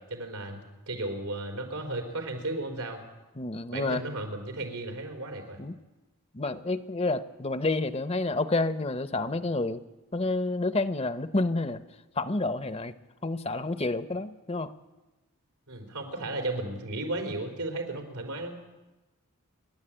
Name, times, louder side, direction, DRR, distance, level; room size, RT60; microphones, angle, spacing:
voice 1, 0.0-3.0 3.7-5.6 15.7-18.6, right 2 dB, 90° right, 4 dB, 4.2 m, -34 dB
voice 2, 3.4-4.0 5.6-5.7 6.3-9.8 10.1-11.8 12.2-12.9 13.2-14.7, left 2 dB, 25° left, 12 dB, 0.7 m, -29 dB
29.5 x 11.5 x 8.9 m, 1.1 s
head